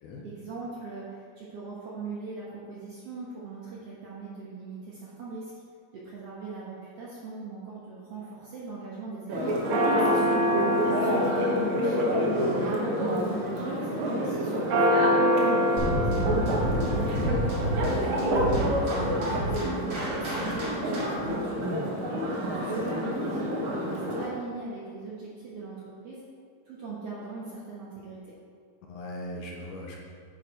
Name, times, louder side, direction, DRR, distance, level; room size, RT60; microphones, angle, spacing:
voice 1, 0.2-5.5 5.9-9.6 9.9-12.0 12.5-17.4 17.8-22.1 22.4-26.2 26.7-28.2, right 3 dB, 60° right, -6 dB, 1.7 m, -39 dB
Church bell, 9.3-24.3, equal, 80° right, 1.1 m, -26 dB
voice 2, 12.4-12.7 28.8-30.0, left 1 dB, 70° left, -2 dB, 2.3 m, -38 dB
sound 1, 15.8-21.3, right 1 dB, 35° right, 2.3 m, -30 dB
10.0 x 4.9 x 4.5 m, 2.2 s
omnidirectional pair, 4.0 m